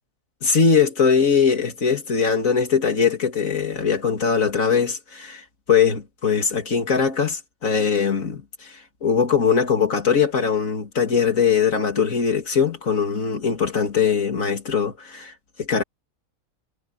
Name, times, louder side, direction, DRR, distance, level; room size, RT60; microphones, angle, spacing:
voice 1, 0.4-8.7 9.0-15.3 15.6-15.8, left 6 dB, 70° left, 2.9 m, -21 dB
omnidirectional pair, 1.4 m